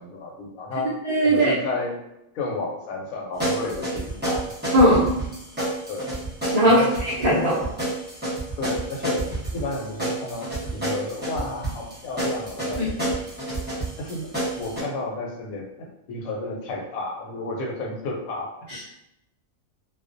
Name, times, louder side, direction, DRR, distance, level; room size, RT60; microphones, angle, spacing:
voice 1, 0.0-0.9 1.2-2.0 2.3-4.5 5.9-6.1 6.6-6.9 8.6-13.0 14.0-14.3 14.6-18.5, left 2 dB, 90° left, 0 dB, 1.0 m, -32 dB
voice 2, 1.0-1.5 4.7-5.2 6.5-7.6 12.8-12.9 18.7-18.8, equal, 85° right, -8 dB, 0.3 m, -18 dB
sound 1, 3.4-14.8, right 1 dB, 10° right, 0.6 m, -29 dB
2.4 x 2.0 x 2.5 m, 0.85 s
omnidirectional pair, 1.4 m